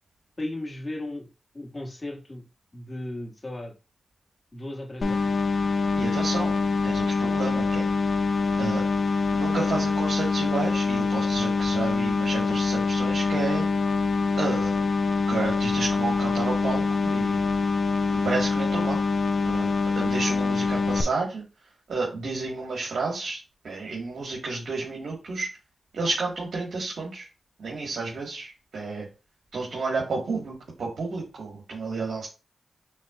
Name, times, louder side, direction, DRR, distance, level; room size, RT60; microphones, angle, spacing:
voice 1, 0.4-1.3 1.5-2.4 2.7-3.7 4.5-5.3, left 1 dB, 35° left, 1 dB, 1.8 m, -35 dB
sound 1, 5.0-21.0, left 4 dB, 60° left, 0.6 m, -25 dB
voice 2, 5.9-6.5 6.8-7.9 8.6-8.9 9.3-13.7 14.4-14.8 15.3-17.4 18.1-19.0 19.4-19.7 19.9-21.4 21.9-23.4 23.6-25.5 25.9-27.3 27.6-29.1 29.5-32.3, right 3 dB, 80° right, -3 dB, 1.5 m, -31 dB
6.4 x 3.3 x 2.4 m, 0.31 s
cardioid pair, 45°, 0 cm